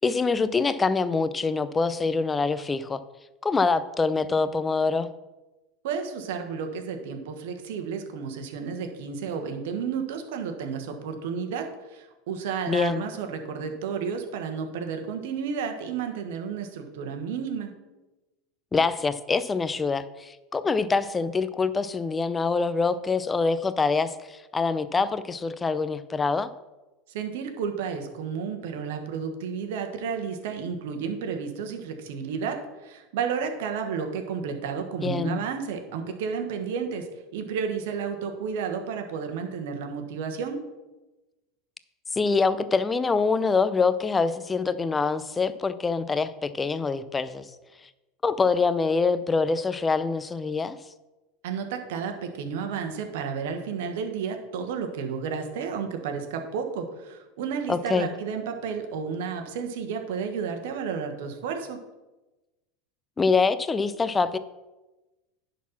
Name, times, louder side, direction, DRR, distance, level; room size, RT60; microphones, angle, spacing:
voice 1, 0.0-3.0 3.4-5.1 12.7-13.1 18.7-26.5 35.0-35.4 42.1-47.5 48.2-50.8 57.7-58.1 63.2-64.4, left 4 dB, 20° left, 13 dB, 0.6 m, -25 dB
voice 2, 5.8-17.7 27.1-40.6 51.4-61.8, right 6 dB, 75° right, 5 dB, 1.3 m, -32 dB
10.5 x 4.1 x 5.9 m, 1.1 s
hypercardioid pair, 95°, 0 cm